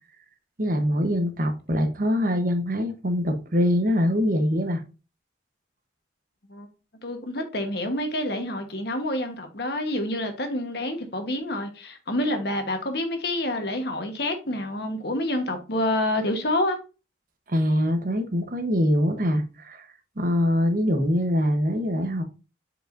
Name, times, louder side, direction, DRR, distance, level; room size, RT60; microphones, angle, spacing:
voice 1, 0.6-4.8 17.5-19.9 20.2-22.2, equal, 45° right, 1.0 m, -23 dB
voice 2, 7.0-16.8, left 1 dB, 60° left, 1.2 m, -28 dB
7.7 x 4.8 x 2.6 m
head